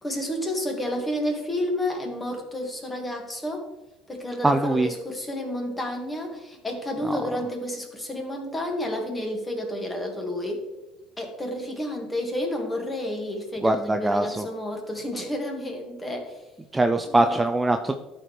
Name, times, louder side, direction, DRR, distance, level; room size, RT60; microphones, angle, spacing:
voice 1, 0.0-3.7 4.1-10.6 11.2-16.4 17.1-17.4, left 1 dB, 15° left, 2 dB, 1.9 m, -30 dB
voice 2, 4.4-4.9 7.0-7.2 13.6-14.5 16.7-17.9, right 2 dB, 15° right, 6 dB, 0.4 m, -22 dB
12.0 x 4.5 x 3.3 m, 1.1 s
supercardioid pair, 95°, 0 cm